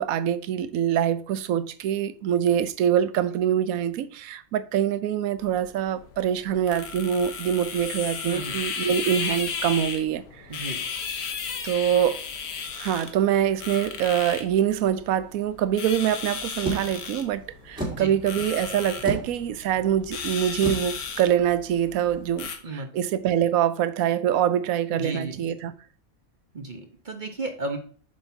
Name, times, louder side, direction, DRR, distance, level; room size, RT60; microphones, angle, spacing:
voice 1, 0.0-10.7 11.6-12.2 12.8-25.7, right 10 dB, 75° right, 1.0 m, -25 dB
sound 1, 5.4-22.6, left 6 dB, 85° left, 1.5 m, -35 dB
voice 2, 8.2-8.6 10.5-10.8 17.9-18.2 22.6-22.9 24.9-25.4 26.5-27.8, right 2 dB, 35° right, 1.0 m, -34 dB
sound 2, 16.6-22.2, right 1 dB, 5° right, 2.0 m, -36 dB
7.8 x 6.5 x 2.7 m
omnidirectional pair, 1.5 m